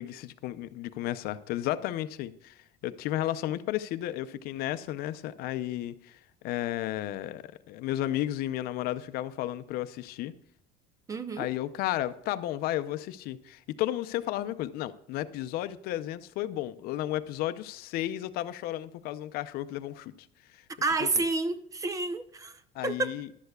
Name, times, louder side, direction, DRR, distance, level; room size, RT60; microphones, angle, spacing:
voice 1, 0.0-10.3 11.4-20.6 21.0-21.1 22.7-23.3, left 14 dB, 60° left, 0.6 m, -33 dB
voice 2, 11.1-11.5 20.8-23.1, right 3 dB, 20° right, 0.7 m, -30 dB
14.5 x 11.5 x 2.3 m
cardioid pair, 150°, 18 cm